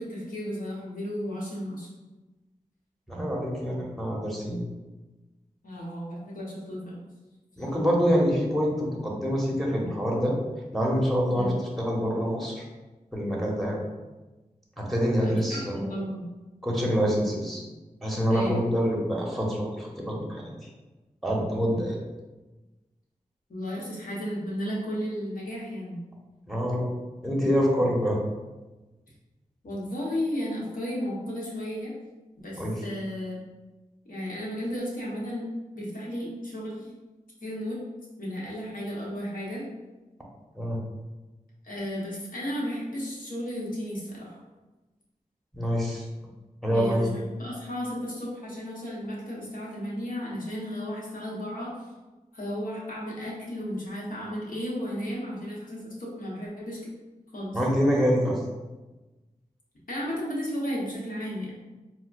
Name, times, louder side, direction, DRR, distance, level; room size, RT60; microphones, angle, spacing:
voice 1, 0.0-1.9 5.6-7.0 11.3-11.6 15.2-16.2 18.3-18.7 23.5-26.0 29.6-31.9 32.4-33.4 34.1-35.5 35.7-36.9 37.4-37.8 38.2-39.7 41.6-44.4 46.7-51.7 52.3-56.8 57.3-57.6 59.9-61.5, equal, 75° left, -5 dB, 1.0 m, -34 dB
voice 2, 3.1-4.6 7.6-10.3 10.7-12.6 13.1-13.8 14.8-15.9 16.6-17.7 18.0-20.5 21.2-22.0 26.5-26.9 27.2-28.2 32.6-32.8 40.5-40.8 45.5-46.0 46.6-47.0 57.5-58.4, equal, ahead, -3 dB, 0.9 m, -26 dB
4.2 x 2.1 x 2.5 m, 1.1 s
cardioid pair, 50°, 14 cm